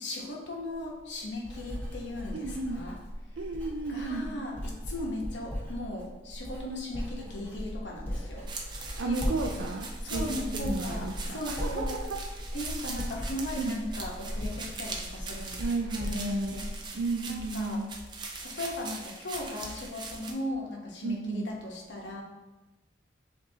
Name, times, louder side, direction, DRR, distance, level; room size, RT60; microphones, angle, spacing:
voice 1, 0.0-3.0 3.9-8.5 9.1-9.2 10.0-12.0 12.5-15.6 15.9-17.0 17.3-17.8 18.4-22.2, left 1 dB, 75° left, -1 dB, 1.0 m, -37 dB
Writing, 0.8-17.8 18.0-18.5, equal, 10° left, 1.3 m, -38 dB
voice 2, 2.3-2.8 3.4-4.3 9.0-12.2 13.6-13.8 15.6-16.6 16.9-17.9 21.0-21.5, right 3 dB, 90° right, 1 dB, 0.4 m, -33 dB
sound 1, 8.5-20.3, right 3 dB, 25° right, 0.5 m, -41 dB
7.0 x 2.7 x 2.7 m, 1.1 s
head